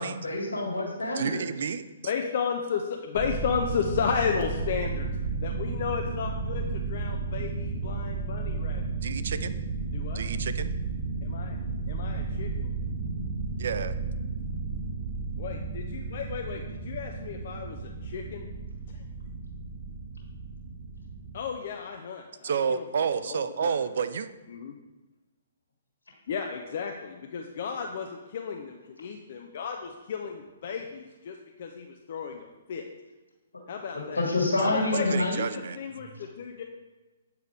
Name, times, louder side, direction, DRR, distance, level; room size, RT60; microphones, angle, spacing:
voice 1, 0.0-1.4 34.2-35.4, left 2 dB, 80° left, -3 dB, 1.7 m, -27 dB
voice 2, 1.1-1.8 9.0-9.6 10.1-10.7 13.6-14.0 22.4-24.3 35.1-35.8, right 6 dB, 60° right, 12 dB, 0.4 m, -30 dB
voice 3, 2.0-5.1 5.4-8.8 9.9-10.2 11.2-11.6 11.9-12.7 15.4-18.5 18.9-19.0 21.3-23.8 24.5-24.7 26.3-32.9 33.7-34.3 34.6-36.6, left 6 dB, 55° left, 2 dB, 0.5 m, -34 dB
sound 1, 3.1-21.4, right 4 dB, 45° right, 1.6 m, -33 dB
8.3 x 4.7 x 3.4 m, 1.2 s
figure-of-eight pair, 125°, 0 cm